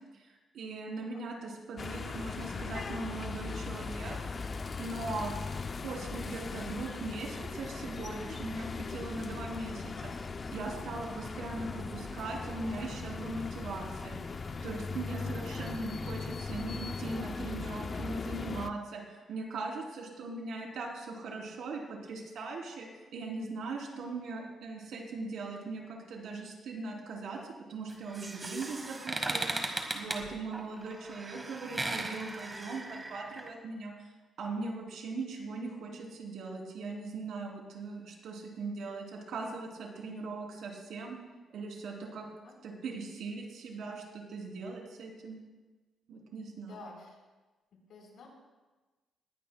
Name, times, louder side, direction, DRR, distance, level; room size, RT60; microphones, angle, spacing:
voice 1, 0.1-4.2 4.8-5.3 5.8-10.1 10.5-14.2 14.6-27.4 27.7-29.6 29.9-34.1 34.4-41.2 41.5-42.3 42.6-45.4 46.1-46.9, right 3 dB, 75° right, 0 dB, 3.3 m, -40 dB
sound 1, 1.8-18.7, left 4 dB, 30° left, 0.5 m, -39 dB
sound 2, 27.9-33.5, right 2 dB, 20° right, 1.4 m, -37 dB
voice 2, 46.6-47.2 47.9-48.3, left 3 dB, 70° left, -1 dB, 4.4 m, -50 dB
19.5 x 16.0 x 2.3 m, 1.2 s
cardioid pair, 130°, 0 cm